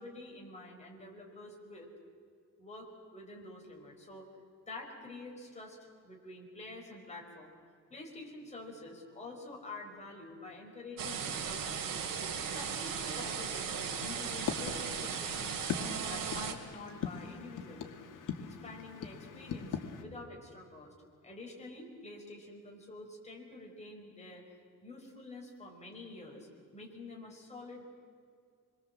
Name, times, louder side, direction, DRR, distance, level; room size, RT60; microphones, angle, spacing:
voice 1, 0.0-1.9 2.6-4.3 4.7-5.8 6.0-7.6 7.9-11.8 12.5-15.5 16.0-17.9 18.4-20.9 21.2-24.6 24.8-26.5 26.7-27.8, left 2 dB, 20° left, -1 dB, 4.9 m, -48 dB
sound 1, 11.0-16.5, right 7 dB, 90° right, 2.6 m, -37 dB
sound 2, 13.7-20.0, left 7 dB, 70° left, 2.1 m, -41 dB
27.0 x 22.0 x 7.6 m, 2.2 s
cardioid pair, 160°, 32 cm